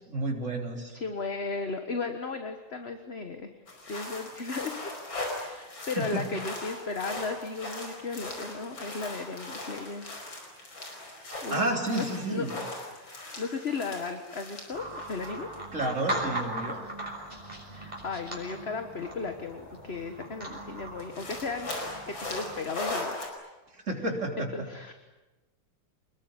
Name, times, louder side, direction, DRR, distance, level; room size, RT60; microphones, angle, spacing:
voice 1, 0.1-0.9 6.0-6.3 11.5-12.5 15.7-16.8 23.9-24.5, right 2 dB, 35° right, 2 dB, 4.1 m, -30 dB
voice 2, 0.9-3.5 3.9-4.8 5.3-10.1 11.4-12.0 12.3-15.5 17.7-21.7 22.1-23.2 24.5-24.9, left 4 dB, 35° left, 7 dB, 1.5 m, -35 dB
sound 1, 3.7-15.6 15.8-15.9 17.0-17.1 19.3-19.4 19.7-19.8 20.1-20.2 21.0-23.3, left 2 dB, 70° left, 5.8 m, -39 dB
sound 2, 14.7-22.6, right 1 dB, 20° right, 6.5 m, -39 dB
26.5 x 21.0 x 9.9 m, 1.1 s
omnidirectional pair, 2.2 m